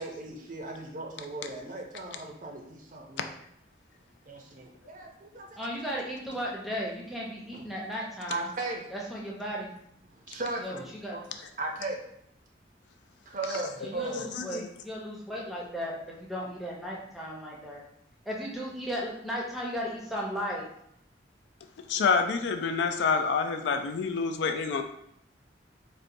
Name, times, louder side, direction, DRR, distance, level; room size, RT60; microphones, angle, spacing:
voice 1, 0.0-3.3 4.3-5.6 7.5-7.6 8.3-8.8 10.1-11.2 11.6-12.0 13.3-14.3, right 2 dB, 45° right, 1 dB, 0.5 m, -37 dB
voice 2, 5.6-8.5 8.9-9.7 10.6-10.7 11.0-11.1 13.8-17.8 18.3-20.7, equal, ahead, -4 dB, 0.6 m, -35 dB
voice 3, 14.1-14.7 21.9-24.8, left 5 dB, 75° left, 6 dB, 0.3 m, -27 dB
4.0 x 2.2 x 2.6 m, 0.73 s
head